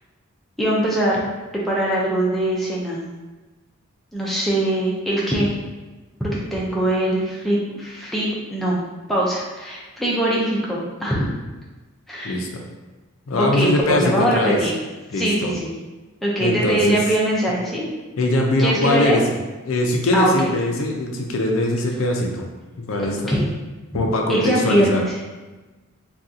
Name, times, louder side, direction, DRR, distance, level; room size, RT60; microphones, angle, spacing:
voice 1, 0.6-1.2 1.5-3.0 4.1-5.5 6.2-8.8 9.1-11.3 12.1-12.4 13.4-14.7 15.2-15.7 16.2-17.9 18.6-19.2 20.1-20.5 23.3-23.5 24.3-25.1, right 1 dB, ahead, -6 dB, 0.5 m, -22 dB
voice 2, 12.2-12.6 13.3-14.6 15.1-15.5 16.4-17.0 18.2-19.2 19.7-22.4 22.8-23.4 23.9-25.0, left 1 dB, 80° left, 1 dB, 0.5 m, -21 dB
2.7 x 2.3 x 3.5 m, 1.2 s
head